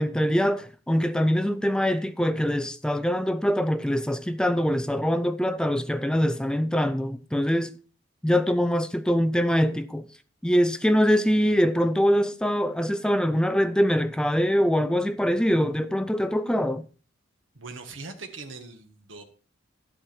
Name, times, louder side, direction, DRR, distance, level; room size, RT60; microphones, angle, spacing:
voice 1, 0.0-7.7 8.2-10.1 10.4-16.8, equal, 5° left, 0.5 m, -23 dB
voice 2, 17.5-19.2, right 3 dB, 70° right, 1.5 m, -41 dB
11.5 x 7.9 x 4.4 m
head